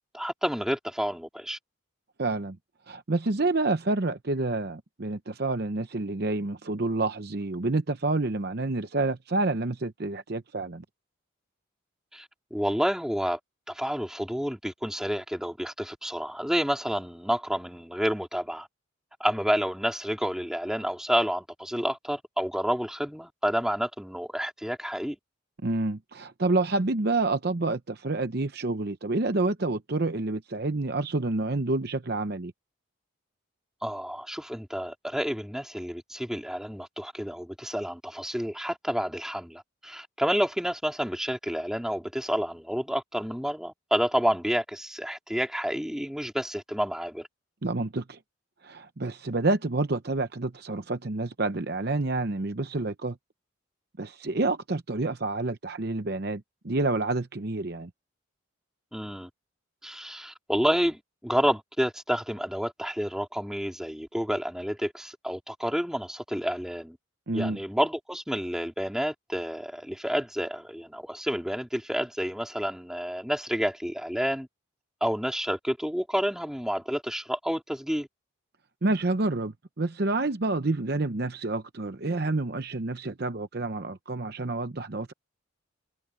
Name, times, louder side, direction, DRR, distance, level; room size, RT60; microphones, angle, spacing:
voice 1, 0.1-1.6 12.1-13.4 13.7-18.7 19.2-25.2 33.8-47.3 58.9-59.3 59.8-67.0 67.3-74.5 75.0-78.1, equal, 5° right, 3.6 m, -29 dB
voice 2, 2.2-2.6 2.9-10.8 25.6-32.5 47.6-48.2 48.6-53.2 54.0-57.9 67.3-67.6 78.8-85.1, right 2 dB, 50° right, 0.8 m, -28 dB
head